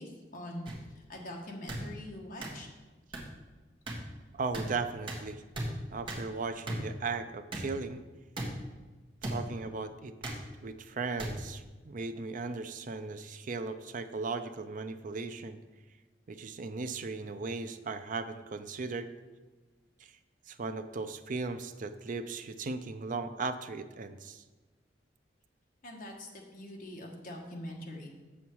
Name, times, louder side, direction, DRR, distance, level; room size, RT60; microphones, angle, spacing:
voice 1, 0.0-2.7 25.8-28.1, left 1 dB, 50° left, 0 dB, 1.4 m, -43 dB
sound 1, 0.6-0.7 1.7-1.8 2.4-2.5 3.1-3.2 3.9-4.0 4.5-4.6 5.1-5.2 5.5-5.7 6.1-6.2 6.7-6.8 7.5-7.6 8.3-8.5 9.2-9.4 10.2-10.4 11.2-11.3 12.1-12.3, right 1 dB, 30° right, 1.5 m, -36 dB
voice 2, 4.3-5.4 5.9-8.0 9.2-10.1 10.6-15.6 16.3-19.1 20.0-20.1 20.5-24.4, right 4 dB, 50° right, 9 dB, 0.5 m, -37 dB
7.1 x 7.1 x 4.6 m, 1.3 s
head